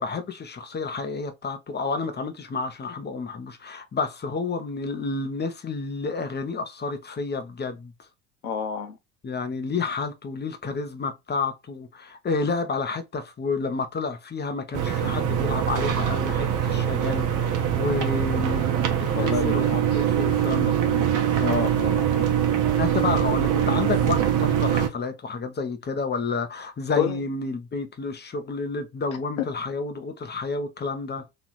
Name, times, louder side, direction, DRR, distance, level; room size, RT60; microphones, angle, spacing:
voice 1, 0.0-7.9 9.2-18.7 19.0-21.1 22.8-31.2, left 4 dB, 25° left, 1.0 m, -30 dB
voice 2, 8.4-9.0 19.1-19.8 21.4-22.4 27.0-27.2 29.4-29.5, left 7 dB, 80° left, 1.0 m, -28 dB
sound 1, 14.7-24.9, right 9 dB, 45° right, 1.0 m, -23 dB
3.2 x 2.9 x 4.1 m
hypercardioid pair, 65°, 42 cm